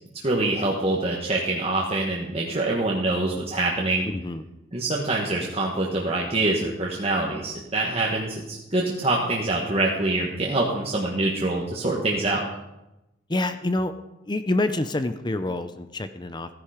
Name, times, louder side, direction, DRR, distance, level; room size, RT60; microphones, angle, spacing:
voice 1, 0.2-4.1 4.7-12.4, right 2 dB, 35° right, -3 dB, 1.5 m, -25 dB
voice 2, 4.1-4.4 13.3-13.9 14.3-16.5, left 2 dB, 25° left, 11 dB, 0.6 m, -27 dB
15.0 x 10.5 x 5.0 m, 0.94 s
head